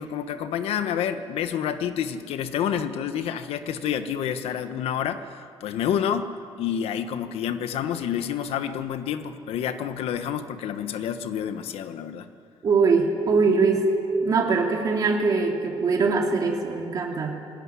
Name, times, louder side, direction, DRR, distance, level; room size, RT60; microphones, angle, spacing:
voice 1, 0.0-6.3 6.6-12.3, left 9 dB, 85° left, 10 dB, 1.2 m, -28 dB
voice 2, 12.6-13.8 14.2-17.4, right 4 dB, 40° right, 1 dB, 2.7 m, -22 dB
20.0 x 17.0 x 9.7 m, 2.4 s
cardioid pair, 170°, 10 cm